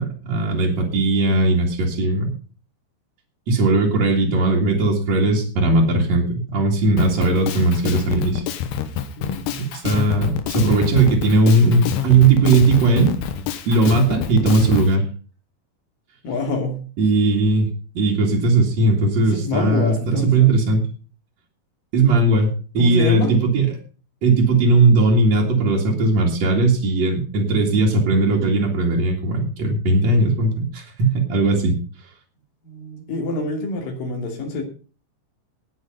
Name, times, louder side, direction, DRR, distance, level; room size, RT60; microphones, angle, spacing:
voice 1, 0.0-2.3 3.5-8.4 9.6-13.1 13.6-15.0 17.0-17.7 17.9-20.9 21.9-22.5 22.7-23.7 24.2-31.7, right 3 dB, 45° right, -3 dB, 2.8 m, -18 dB
Drum kit, 7.0-14.9, left 9 dB, 75° left, 3.1 m, -27 dB
voice 2, 9.2-9.6 16.2-16.8 19.2-20.5 22.8-23.3 32.6-34.6, left 2 dB, 55° left, 3 dB, 4.0 m, -26 dB
19.0 x 6.4 x 5.4 m, 0.38 s
omnidirectional pair, 5.1 m